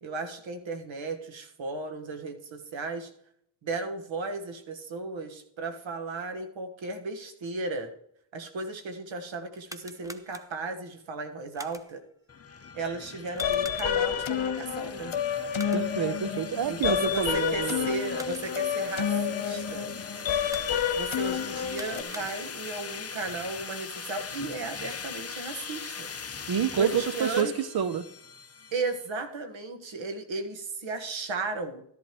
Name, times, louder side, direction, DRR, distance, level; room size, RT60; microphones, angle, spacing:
voice 1, 0.0-3.1 3.6-7.9 8.3-12.0 12.7-15.2 16.7-19.9 21.0-26.1 26.8-27.5 28.7-31.8, right 3 dB, 90° right, 5 dB, 1.5 m, -35 dB
sound 1, 9.5-10.8 11.5-12.1 13.3-14.2 15.5-16.1 17.9-18.7 20.4-21.1 21.6-22.7, right 1 dB, 5° right, 0.8 m, -47 dB
sound 2, 12.3-29.1, left 6 dB, 30° left, 0.8 m, -41 dB
sound 3, 13.4-22.0, left 8 dB, 80° left, 1.1 m, -29 dB
voice 2, 15.7-17.9 26.5-28.1, right 8 dB, 55° right, 14 dB, 0.7 m, -28 dB
13.5 x 11.0 x 3.1 m, 0.72 s
wide cardioid pair, 90°, 45 cm